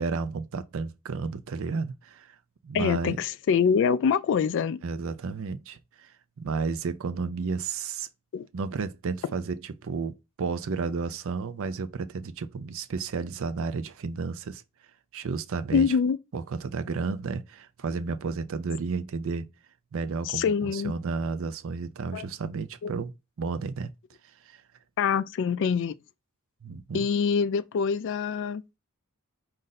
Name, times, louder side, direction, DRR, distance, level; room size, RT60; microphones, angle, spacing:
voice 1, 0.0-2.3 2.6-3.2 4.8-6.1 6.4-8.1 8.5-14.6 15.1-15.9 16.3-19.5 19.9-23.1 23.4-23.9 24.5-24.6 26.6-27.1, right 4 dB, 65° right, 0.5 m, -32 dB
voice 2, 2.7-4.8 8.3-8.5 15.7-16.2 20.2-20.9 22.1-22.3 22.8-22.9 25.0-26.0 26.9-28.6, left 6 dB, 55° left, 0.3 m, -25 dB
5.2 x 2.6 x 3.9 m
head